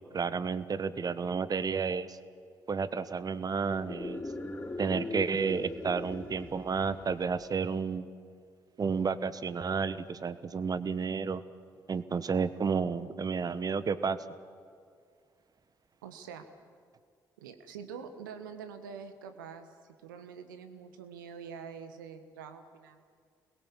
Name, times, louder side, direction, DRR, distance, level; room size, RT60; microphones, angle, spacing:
voice 1, 0.0-2.2 2.7-4.2 4.8-8.1 8.8-11.4 11.9-14.2, right 5 dB, 35° right, 14 dB, 1.3 m, -31 dB
sound 1, 3.7-7.4, left 2 dB, 15° left, 4.3 m, -40 dB
voice 2, 16.0-16.4 17.4-23.0, right 6 dB, 75° right, 8 dB, 1.5 m, -45 dB
28.5 x 21.0 x 7.3 m, 2.2 s
figure-of-eight pair, 45°, 11 cm